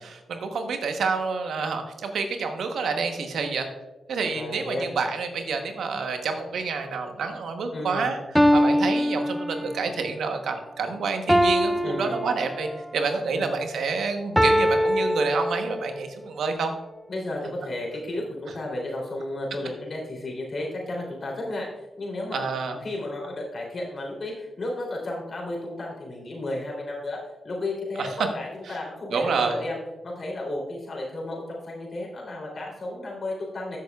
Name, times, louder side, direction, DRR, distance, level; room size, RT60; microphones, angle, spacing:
voice 1, 0.0-3.7 4.1-8.2 8.5-16.7 22.3-22.8 28.0-28.3 28.6-28.8 29.1-29.6, right 4 dB, 75° right, 6 dB, 1.0 m, -28 dB
voice 2, 4.3-4.9 7.7-8.1 11.8-12.2 13.3-13.5 17.1-21.7 22.0-22.4 22.8-27.2 27.4-29.8 30.0-33.8, left 1 dB, 55° left, -2 dB, 3.2 m, -33 dB
sound 1, 7.6-7.7 8.4-10.0 11.3-12.9 14.4-16.0, equal, 5° right, 0.5 m, -23 dB
13.5 x 6.6 x 2.4 m, 1.1 s
supercardioid pair, 40°, 0 cm